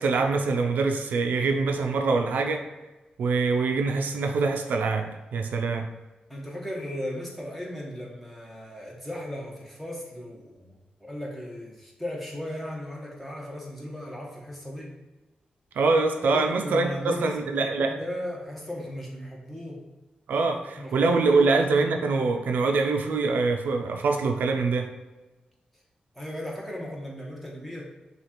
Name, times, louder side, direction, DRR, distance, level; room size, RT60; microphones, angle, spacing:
voice 1, 0.0-2.7 3.2-5.9 15.8-18.0 20.3-24.9, right 4 dB, 85° right, 4 dB, 0.4 m, -24 dB
voice 2, 6.3-14.9 16.2-17.4 17.9-19.9 20.8-21.5 26.1-27.9, left 1 dB, ahead, -4 dB, 1.2 m, -36 dB
6.3 x 2.4 x 3.0 m, 1.1 s
cardioid pair, 95°, 3 cm